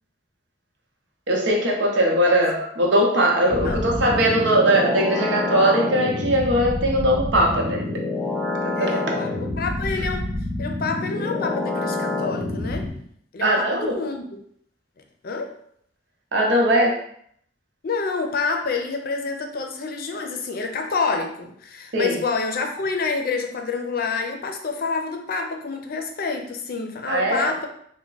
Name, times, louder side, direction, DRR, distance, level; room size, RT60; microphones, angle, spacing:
voice 1, 1.3-7.8 8.8-9.0 13.4-14.0 16.3-17.0 21.9-22.2 27.1-27.5, right 1 dB, 80° right, 0 dB, 0.8 m, -20 dB
sound 1, 3.5-12.9, left 2 dB, 10° right, 0.9 m, -27 dB
voice 2, 8.8-10.3 10.6-12.9 13.3-14.4 15.2-15.5 17.8-27.7, left 4 dB, 55° left, 4 dB, 0.5 m, -28 dB
3.5 x 2.2 x 3.9 m, 0.66 s
head